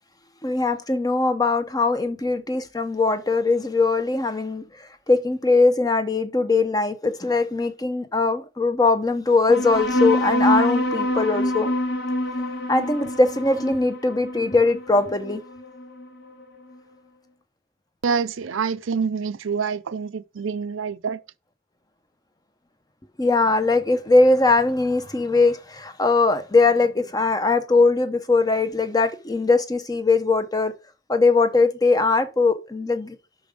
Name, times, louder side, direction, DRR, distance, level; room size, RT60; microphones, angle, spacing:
voice 1, 0.4-11.7 12.7-15.4 23.2-30.7 31.1-33.2, left 3 dB, 20° left, 0.7 m, -21 dB
sound 1, 9.5-16.4, left 1 dB, 50° left, 1.2 m, -25 dB
voice 2, 18.0-21.2, right 5 dB, 70° right, 0.5 m, -26 dB
6.1 x 5.1 x 5.0 m
head